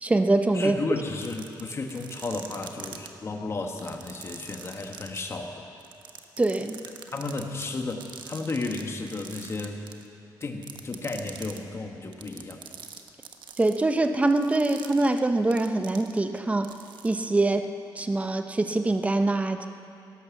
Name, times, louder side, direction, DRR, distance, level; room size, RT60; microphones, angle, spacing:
voice 1, 0.0-0.8 6.4-6.8 13.6-16.7 17.0-17.7 18.0-19.7, right 2 dB, 15° right, 7 dB, 0.9 m, -24 dB
voice 2, 0.5-5.6 7.1-9.8 10.4-12.6, left 3 dB, 35° left, 3 dB, 1.6 m, -33 dB
sound 1, 1.1-3.1 3.7-5.2 5.8-8.8 9.1-10.1 10.4-11.6 12.1-16.4 16.6-17.1, right 8 dB, 75° right, 1.1 m, -43 dB
18.0 x 11.5 x 7.2 m, 2.8 s
wide cardioid pair, 130°, 8 cm